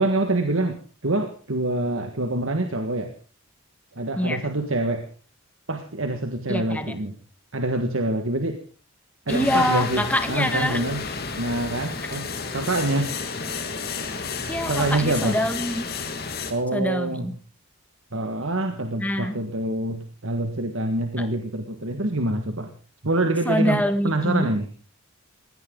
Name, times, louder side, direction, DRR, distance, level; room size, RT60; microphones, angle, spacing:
voice 1, 0.0-3.1 3.9-5.1 5.7-7.1 7.5-8.6 9.3-11.0 11.3-12.3 12.5-13.2 14.7-15.4 16.5-17.3 18.1-22.7 23.0-24.7, right 2 dB, 65° right, 6 dB, 1.7 m, -26 dB
voice 2, 6.5-6.9 9.3-10.8 14.1-15.9 16.7-17.3 19.0-19.4 21.2-21.3 23.4-24.5, left 1 dB, 5° left, 8 dB, 1.5 m, -25 dB
sound 1, 9.3-16.5, left 4 dB, 45° left, 2.6 m, -32 dB
21.5 x 17.5 x 3.9 m, 0.38 s
head